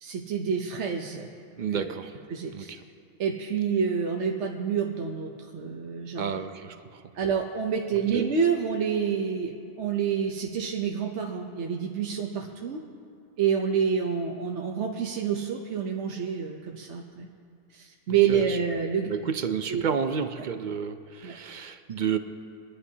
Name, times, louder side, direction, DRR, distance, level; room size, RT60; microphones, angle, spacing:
voice 1, 0.0-1.3 1.7-1.9 2.3-2.7 3.2-6.3 7.1-12.8 13.4-17.3 17.7-19.1 19.7-19.8 20.4-20.5 21.2-21.4, right 7 dB, 70° right, 1 dB, 1.1 m, -28 dB
voice 2, 1.6-2.1 2.5-2.8 6.2-6.8 8.1-8.2 18.3-18.6 19.1-22.2, right 7 dB, 50° right, 9 dB, 0.6 m, -30 dB
25.0 x 11.0 x 2.8 m, 2.5 s
omnidirectional pair, 1.2 m